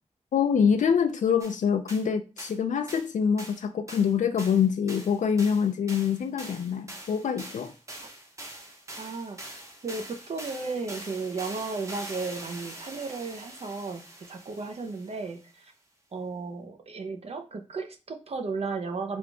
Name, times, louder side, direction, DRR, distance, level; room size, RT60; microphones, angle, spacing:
voice 1, 0.3-7.7, left 7 dB, 85° left, 0.4 m, -25 dB
sound 1, 1.4-1.6 1.9-2.1 2.4-2.6 2.9-3.1 3.4-3.6 3.9-15.4, right 1 dB, 25° right, 1.0 m, -44 dB
voice 2, 9.0-9.4 9.8-14.0 14.3-15.7 16.1-19.2, right 4 dB, 55° right, 0.7 m, -34 dB
3.9 x 3.5 x 3.4 m
wide cardioid pair, 125°, 12 cm